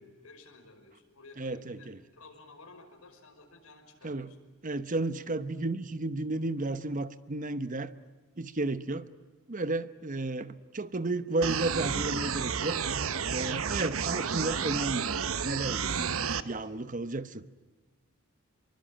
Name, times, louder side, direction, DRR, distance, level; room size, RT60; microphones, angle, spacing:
voice 1, 0.0-4.4, left 3 dB, 85° left, 3 dB, 5.5 m, -54 dB
voice 2, 1.4-2.0 4.0-4.3 4.6-7.9 8.4-9.1 9.5-12.8 13.3-15.1 15.4-16.1 16.4-17.6, right 2 dB, 35° right, 13 dB, 0.9 m, -33 dB
sound 1, 11.4-16.4, right 6 dB, 75° right, 1.0 m, -31 dB
26.0 x 23.5 x 9.0 m, 1.3 s
head